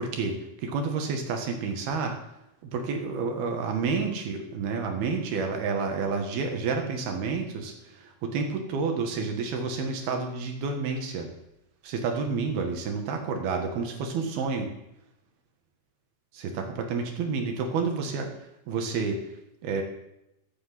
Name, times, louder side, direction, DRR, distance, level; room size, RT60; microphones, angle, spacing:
voice 1, 0.0-2.2 2.6-11.3 11.8-14.7 16.3-18.3 18.7-19.2 19.6-19.8, right 4 dB, 60° right, 4 dB, 3.2 m, -29 dB
15.5 x 8.0 x 7.7 m, 0.86 s
omnidirectional pair, 5.6 m